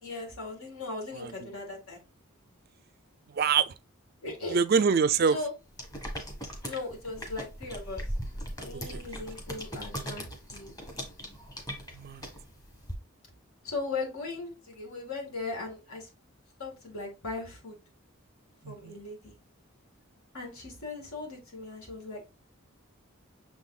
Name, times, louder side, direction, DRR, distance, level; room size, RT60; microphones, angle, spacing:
voice 1, 0.0-2.0 4.2-4.6 5.3-5.5 6.6-10.7 13.6-16.1 16.6-17.8 18.7-19.4 20.3-22.3, left 3 dB, 80° left, 2.2 m, -38 dB
voice 2, 3.4-3.7 4.5-5.4 8.9-9.0 11.9-12.2 18.6-18.9, right 6 dB, 45° right, 0.3 m, -25 dB
sound 1, 5.7-12.9, equal, 15° left, 1.0 m, -39 dB
6.3 x 3.6 x 2.3 m
head